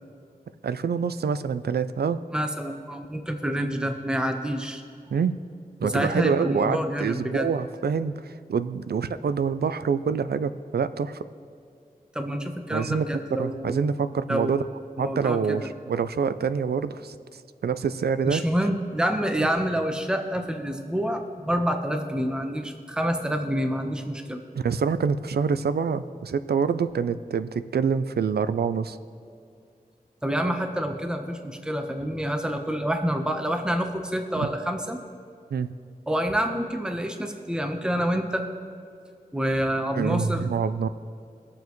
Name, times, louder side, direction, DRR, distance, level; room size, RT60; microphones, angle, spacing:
voice 1, 0.6-2.2 5.1-5.4 5.8-11.3 12.7-14.6 15.0-18.4 19.3-19.5 24.6-29.0 34.4-34.5 35.5-35.7 40.0-40.9, right 6 dB, 90° right, 13 dB, 0.4 m, -26 dB
voice 2, 2.3-4.8 5.8-7.5 12.1-13.8 14.2-14.6 15.0-15.6 18.2-24.4 30.2-35.0 36.1-38.5 39.3-40.4, equal, 5° right, 5 dB, 1.0 m, -27 dB
21.0 x 7.2 x 3.1 m, 2.4 s
cardioid pair, 40°, 16 cm